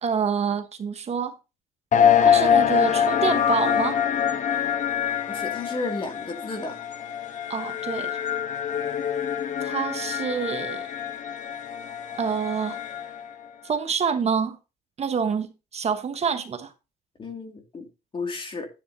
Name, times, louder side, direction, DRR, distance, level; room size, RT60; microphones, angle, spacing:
voice 1, 0.0-1.4 2.2-4.0 7.5-8.2 9.6-10.8 12.2-12.8 13.6-14.6 15.0-16.7, right 6 dB, 40° right, 1.2 m, -27 dB
sound 1, 1.9-13.3, left 8 dB, 50° left, 1.1 m, -24 dB
voice 2, 5.3-6.8 17.2-17.9 18.1-18.7, left 3 dB, 30° left, 2.5 m, -32 dB
11.0 x 10.0 x 2.8 m
cardioid pair, 110°, 17 cm